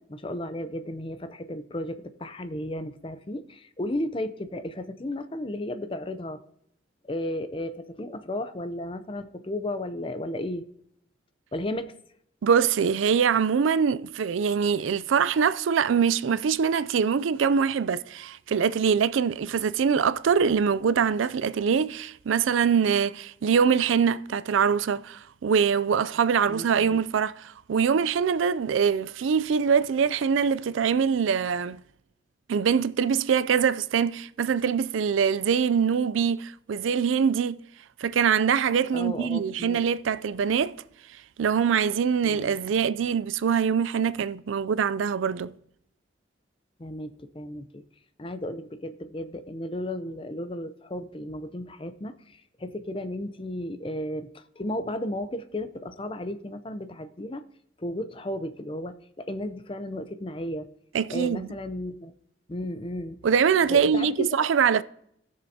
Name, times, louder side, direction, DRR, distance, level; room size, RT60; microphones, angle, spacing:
voice 1, 0.0-6.4 7.1-10.6 11.5-11.9 26.5-27.0 38.9-39.8 42.2-42.6 46.8-47.8 48.2-57.4 57.8-60.7 61.1-62.1 62.5-63.2 63.7-64.4, left 1 dB, 30° left, 0.6 m, -34 dB
voice 2, 12.4-31.8 32.5-37.6 38.0-40.8 41.4-45.5 60.9-61.5 63.2-64.8, right 6 dB, 90° right, 0.4 m, -23 dB
18.5 x 6.7 x 2.8 m
head